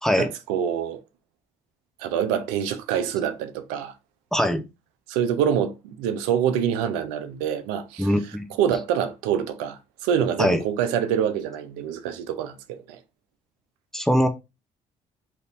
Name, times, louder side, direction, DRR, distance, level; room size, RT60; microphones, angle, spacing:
voice 1, 0.1-1.0 2.0-3.9 5.1-8.1 8.6-13.0, right 8 dB, 80° right, 0.5 m, -26 dB
voice 2, 4.3-4.6 8.0-8.4 10.4-10.6 13.9-14.3, equal, 5° left, 0.7 m, -21 dB
2.8 x 2.6 x 3.4 m
hypercardioid pair, 60°, 16 cm